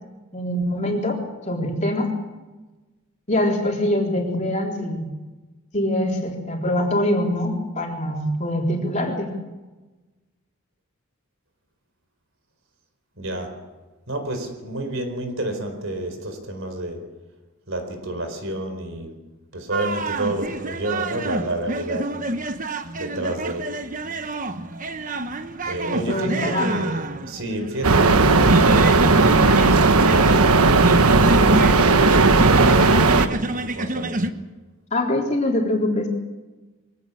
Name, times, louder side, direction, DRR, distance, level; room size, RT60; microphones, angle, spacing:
voice 1, 0.3-1.2 1.5-2.1 3.3-5.1 5.7-9.3 25.9-26.9 34.9-36.1, left 1 dB, 30° left, 3.8 m, -23 dB
voice 2, 13.2-13.6 14.1-17.1 17.7-19.2 19.5-22.1 22.9-23.8 25.7-29.2 29.7-34.2, right 1 dB, 65° right, 4.5 m, -29 dB
sound 1, 19.7-34.3, right 2 dB, 35° right, 1.1 m, -28 dB
sound 2, 27.8-33.3, right 3 dB, 90° right, 1.3 m, -15 dB
23.5 x 17.5 x 8.5 m
head